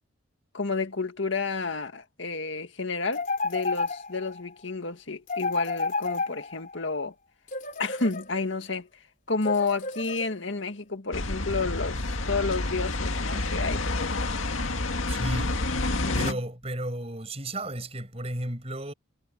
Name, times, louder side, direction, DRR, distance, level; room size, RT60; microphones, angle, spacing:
voice 1, 0.5-7.1 7.8-8.9 9.3-13.8 15.8-16.4, left 3 dB, 70° left, 2.0 m, -30 dB
sound 1, 3.1-4.4 5.3-6.8 7.5-8.7 9.4-10.6, left 3 dB, 40° left, 4.4 m, -32 dB
sound 2, 11.1-16.3, left 2 dB, 90° left, 2.1 m, -29 dB
voice 2, 15.1-15.6 16.1-18.9, right 1 dB, 30° right, 7.7 m, -33 dB
head